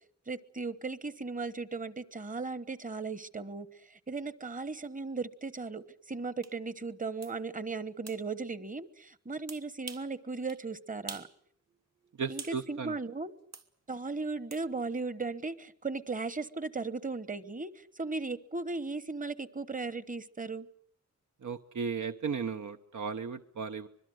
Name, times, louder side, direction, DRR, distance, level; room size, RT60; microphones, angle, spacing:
voice 1, 0.3-11.3 12.3-13.3 13.9-20.7, right 3 dB, 25° right, 15 dB, 1.1 m, -37 dB
sound 1, 6.4-6.5 7.2-7.4 8.1-8.2 9.5-10.1 10.5-10.6 11.1-11.3 11.7-12.6 13.5-13.7 14.5-14.6, right 4 dB, 60° right, 2.2 m, -45 dB
voice 2, 12.2-13.0 21.4-23.9, right 6 dB, 80° right, 7 dB, 1.0 m, -35 dB
25.0 x 22.0 x 7.8 m, 0.64 s
wide cardioid pair, 110°, 30 cm